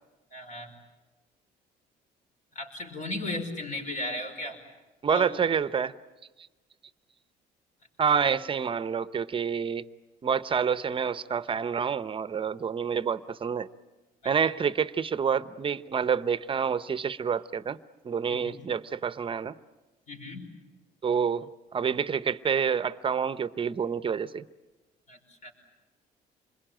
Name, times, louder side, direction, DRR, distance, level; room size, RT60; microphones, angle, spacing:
voice 1, 0.3-0.7 2.6-4.6 5.1-5.3 18.3-18.6 20.1-20.5 25.1-25.5, left 1 dB, 50° left, 5 dB, 5.3 m, -36 dB
voice 2, 5.0-5.9 8.0-9.8 10.2-13.7 14.2-17.8 18.0-19.5 21.0-24.4, right 6 dB, 30° right, 15 dB, 0.8 m, -28 dB
27.0 x 21.5 x 9.0 m, 1.2 s
cardioid pair, 110°, 17 cm